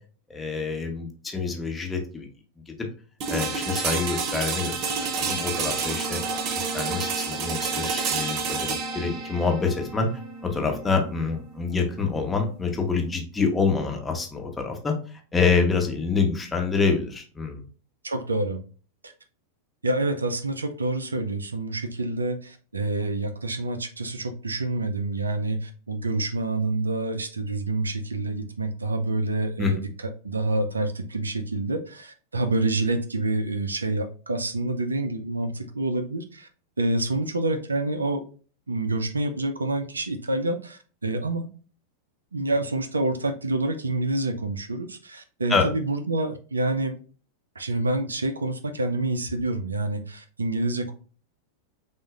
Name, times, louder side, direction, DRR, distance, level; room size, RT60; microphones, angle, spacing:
voice 1, 0.3-2.3 2.7-2.9 3.3-6.2 6.6-10.1 10.4-17.6 29.6-29.7 45.5-45.7, left 4 dB, 15° left, 2 dB, 1.1 m, -26 dB
sound 1, 3.2-13.1, right 4 dB, 45° right, 0.8 m, -30 dB
voice 2, 18.0-18.6 19.0-19.1 19.8-29.8 30.2-36.5 36.8-38.2 38.7-41.5 42.3-47.0 47.6-50.9, right 2 dB, 90° right, 9 dB, 0.5 m, -27 dB
6.2 x 2.5 x 2.4 m, 0.39 s
hypercardioid pair, 95°, 0 cm